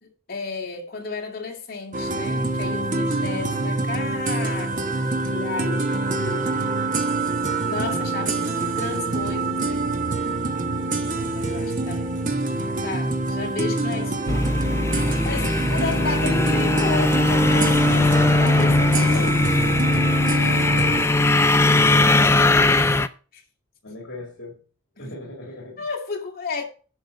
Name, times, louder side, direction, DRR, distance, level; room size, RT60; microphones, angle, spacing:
voice 1, 0.0-7.0 7.6-9.9 11.1-12.0 12.6-14.6 15.2-19.5 21.1-21.4 23.3-23.4 25.0-25.1 25.8-26.6, left 4 dB, 50° left, 2.4 m, -33 dB
sound 1, 1.9-21.0, right 2 dB, 40° right, 1.2 m, -25 dB
voice 2, 5.5-6.2 23.8-24.6 25.0-25.9, left 1 dB, 65° left, 2.8 m, -39 dB
sound 2, 14.3-23.1, left 2 dB, 15° left, 0.4 m, -19 dB
10.5 x 5.0 x 6.8 m
head